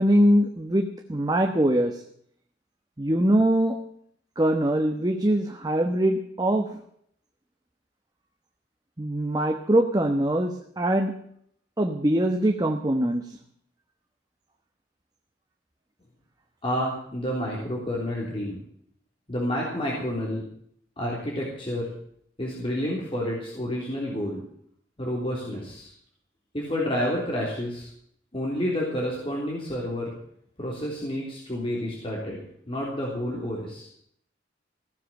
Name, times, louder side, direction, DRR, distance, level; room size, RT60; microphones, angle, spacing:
voice 1, 0.0-2.0 3.0-3.8 4.4-6.7 9.0-11.1 11.8-13.3, right 1 dB, 20° right, 4 dB, 1.0 m, -23 dB
voice 2, 16.6-18.6 19.3-20.4 21.0-21.9 22.4-24.4 25.0-25.9 26.5-27.9 28.3-30.1 30.6-33.9, equal, 30° left, -3 dB, 3.4 m, -29 dB
16.0 x 7.7 x 9.0 m, 0.67 s
head